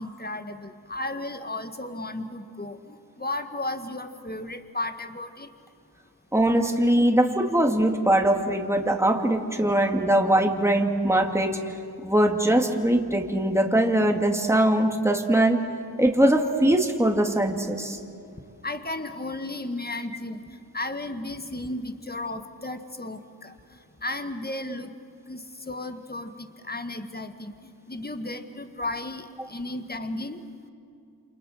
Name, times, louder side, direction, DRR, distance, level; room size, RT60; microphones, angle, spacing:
voice 1, 0.0-5.5 18.6-24.9 25.3-27.5 27.9-30.4, left 2 dB, 25° left, 8 dB, 1.7 m, -34 dB
voice 2, 6.3-11.6 12.0-15.6 16.0-18.0, right 1 dB, 5° right, 3 dB, 2.3 m, -21 dB
29.0 x 27.5 x 6.6 m, 2.5 s
wide cardioid pair, 50°, 40 cm